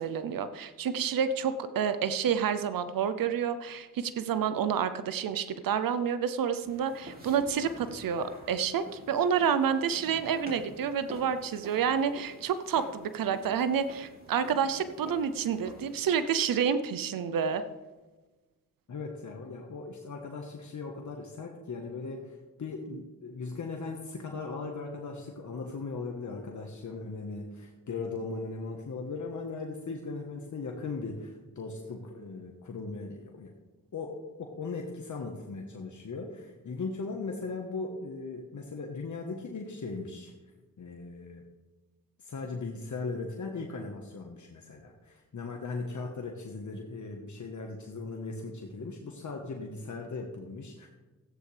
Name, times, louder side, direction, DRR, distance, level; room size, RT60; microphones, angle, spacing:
voice 1, 0.0-17.6, right 7 dB, 85° right, 12 dB, 0.6 m, -29 dB
sound 1, 6.6-16.2, equal, 25° right, 3.0 m, -49 dB
voice 2, 18.9-33.5 33.9-40.3 40.8-41.4 42.2-50.9, left 3 dB, 60° left, 1 dB, 1.3 m, -38 dB
15.0 x 9.9 x 3.4 m, 1.2 s
cardioid pair, 60°, 33 cm